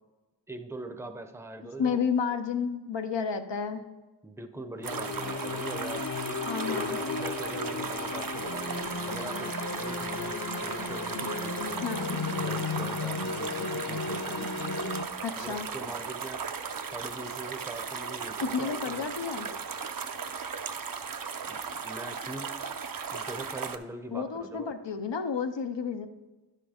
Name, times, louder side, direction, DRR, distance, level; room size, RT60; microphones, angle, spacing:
voice 1, 0.5-2.1 4.2-8.7 9.1-11.8 12.3-15.0 15.4-16.6 16.9-19.1 21.5-22.5 23.1-24.7, right 2 dB, 5° right, 8 dB, 0.6 m, -42 dB
voice 2, 1.8-3.8 6.4-7.0 11.8-12.2 15.2-15.7 18.4-19.5 24.1-26.1, left 6 dB, 80° left, 7 dB, 0.7 m, -31 dB
sound 1, 4.8-15.0, left 4 dB, 45° left, 0.6 m, -35 dB
sound 2, 4.8-23.8, right 6 dB, 55° right, 0.6 m, -36 dB
10.5 x 5.6 x 3.6 m, 1.2 s
wide cardioid pair, 40°, 42 cm